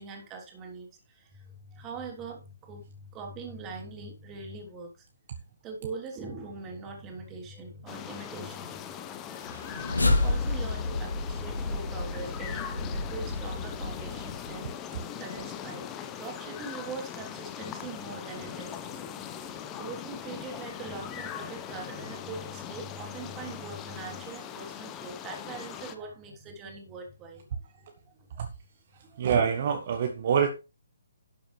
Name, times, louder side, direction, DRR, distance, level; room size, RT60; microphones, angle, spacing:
voice 1, 0.0-5.1 5.6-9.2 9.5-28.4 28.9-29.3, right 4 dB, 20° right, 2 dB, 3.2 m, -42 dB
sound 1, 7.9-26.0, left 9 dB, 20° left, 1.1 m, -40 dB
sound 2, 9.4-14.7, left 2 dB, 75° left, 2.6 m, -30 dB
voice 2, 29.2-30.5, right 7 dB, 45° right, 5 dB, 1.3 m, -25 dB
12.0 x 8.9 x 3.3 m, 0.30 s
figure-of-eight pair, 135°, 0 cm